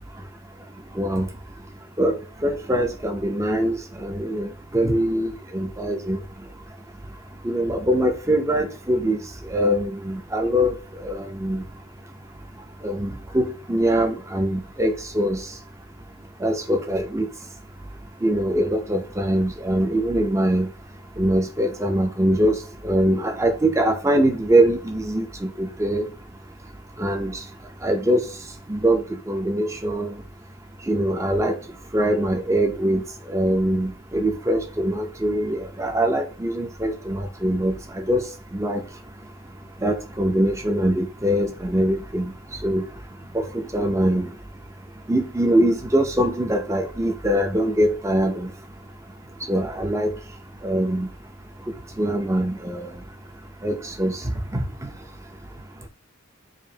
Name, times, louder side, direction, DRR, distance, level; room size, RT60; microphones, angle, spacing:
voice 1, 1.0-1.3 2.0-6.2 7.4-9.2 9.5-10.7 11.0-11.6 12.8-15.4 16.4-17.3 18.2-20.7 21.2-22.6 22.8-26.1 27.0-27.4 27.8-28.2 28.7-30.2 30.9-31.5 31.9-33.0 33.3-38.2 38.5-38.8 39.8-42.3 42.6-42.8 43.3-43.4 43.7-44.3 45.1-48.5 49.5-50.1 50.6-51.1 52.0-52.9 53.6-54.2 54.5-54.6, right 1 dB, 15° right, 0.5 m, -23 dB
4.9 x 2.5 x 2.7 m
head